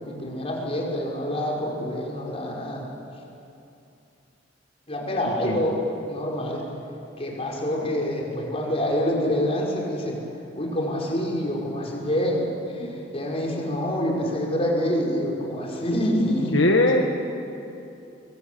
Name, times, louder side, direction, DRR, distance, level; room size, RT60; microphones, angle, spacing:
voice 1, 0.0-2.8 4.9-5.8 6.1-6.6 7.2-10.2 10.6-12.4 12.7-16.6, equal, 35° left, -2 dB, 5.4 m, -26 dB
voice 2, 5.2-5.6 16.5-17.1, left 2 dB, 75° left, 2 dB, 1.7 m, -20 dB
23.5 x 21.5 x 8.5 m, 2.7 s
head